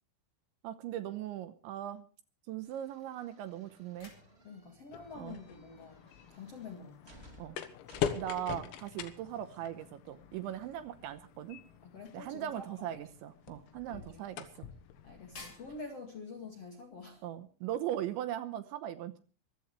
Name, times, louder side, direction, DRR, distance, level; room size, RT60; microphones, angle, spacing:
voice 1, 0.6-2.1 2.5-4.1 5.2-5.4 7.4-7.6 8.2-11.6 12.1-14.7 17.2-19.2, right 11 dB, 75° right, 10 dB, 3.0 m, -39 dB
sound 1, 2.6-8.5, equal, 25° right, 1.3 m, -59 dB
sound 2, 3.6-16.6, left 3 dB, 30° left, 4.9 m, -61 dB
voice 2, 4.4-7.2 11.8-13.1 13.9-14.2 15.0-17.2, left 4 dB, 50° left, 3 dB, 1.9 m, -47 dB
sound 3, 4.9-15.8, left 9 dB, 90° left, 4.2 m, -43 dB
24.5 x 15.0 x 3.2 m, 0.36 s
omnidirectional pair, 5.9 m